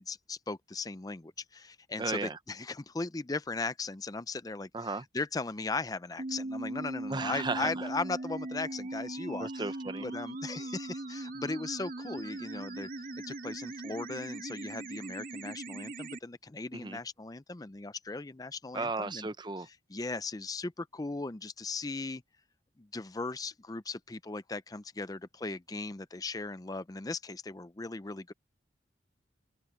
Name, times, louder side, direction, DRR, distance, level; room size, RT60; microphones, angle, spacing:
voice 1, 0.0-9.7 10.0-12.9 13.2-19.3 19.9-22.2 22.8-28.3, left 3 dB, 20° left, 0.5 m, -38 dB
voice 2, 2.0-2.4 4.7-5.0 7.1-7.9 9.4-10.1 16.7-17.0 18.7-19.7, right 3 dB, 25° right, 0.7 m, -35 dB
sound 1, 6.2-16.2, right 2 dB, 50° right, 2.6 m, -39 dB
head